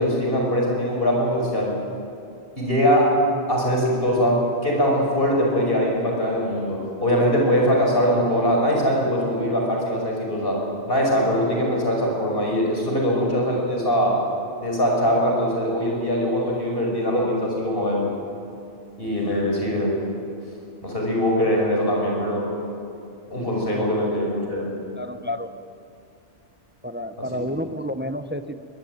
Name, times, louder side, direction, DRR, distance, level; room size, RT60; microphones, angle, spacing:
voice 1, 0.0-1.8 2.6-3.2 3.5-10.6 10.9-14.2 14.6-18.1 19.0-20.0 20.8-22.6 23.3-24.8 27.2-27.3, equal, 55° left, -1 dB, 6.0 m, -22 dB
voice 2, 25.0-25.5 26.8-28.6, equal, 10° right, 10 dB, 0.7 m, -30 dB
23.0 x 22.0 x 9.5 m, 2.5 s
omnidirectional pair, 1.2 m